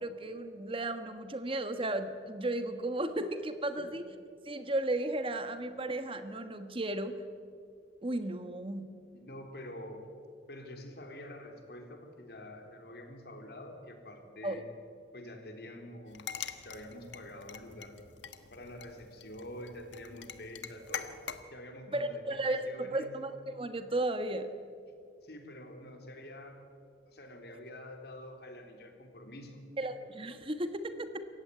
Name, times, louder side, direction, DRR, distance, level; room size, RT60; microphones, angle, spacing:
voice 1, 0.0-4.0 4.4-7.2 8.0-8.9 14.4-14.6 21.9-24.5 29.8-31.3, right 1 dB, 30° right, 9 dB, 1.3 m, -34 dB
voice 2, 9.1-10.1 10.5-14.6 15.1-16.4 16.7-18.0 18.5-21.1 21.5-23.1 25.2-26.6 27.1-29.6, left 1 dB, 60° left, 4 dB, 3.6 m, -47 dB
sound 1, 16.1-21.4, left 7 dB, 90° left, 1.4 m, -44 dB
27.0 x 15.5 x 9.3 m, 2.3 s
head